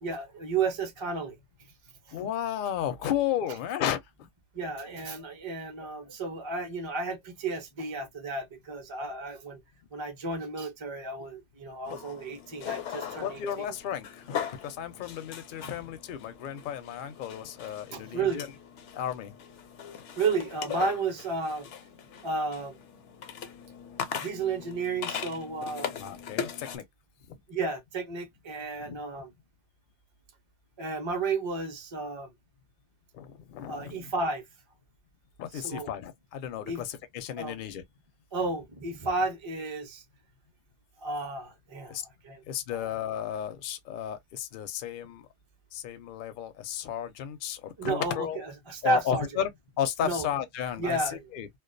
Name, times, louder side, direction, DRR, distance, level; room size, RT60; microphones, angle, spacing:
voice 1, 0.0-1.3 4.5-9.6 9.9-13.7 17.9-18.4 20.2-21.7 22.2-22.8 24.2-26.0 27.5-29.3 30.8-32.3 33.7-34.4 35.5-35.9 36.6-36.8 37.4-37.5 38.3-40.0 41.0-42.4 42.7-42.9 47.8-49.3 50.0-50.3 50.8-51.2, right 3 dB, 30° right, 0.6 m, -32 dB
voice 2, 2.1-4.0 11.9-12.0 13.2-18.5 18.9-19.3 26.0-26.8 28.8-29.0 33.1-34.1 35.4-37.8 41.9-42.0 42.5-45.3 45.7-48.4 48.8-49.5 49.8-51.5, left 9 dB, 60° left, 0.6 m, -33 dB
sound 1, 11.8-26.8, left 8 dB, 80° left, 0.9 m, -40 dB
2.3 x 2.3 x 2.4 m
omnidirectional pair, 1.2 m